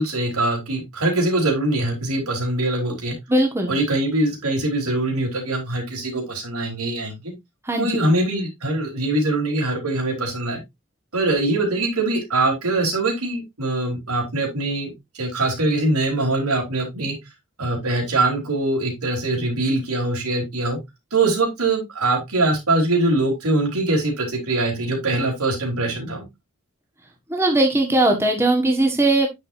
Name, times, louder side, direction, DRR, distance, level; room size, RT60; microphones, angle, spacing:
voice 1, 0.0-3.1 3.7-7.3 7.8-10.6 11.1-17.1 17.6-20.8 21.1-26.2, right 2 dB, 85° right, 0 dB, 4.0 m, -23 dB
voice 2, 3.3-3.8 7.6-8.1 27.3-29.3, right 2 dB, 10° right, 2 dB, 1.6 m, -19 dB
9.3 x 6.5 x 2.7 m, 0.19 s
head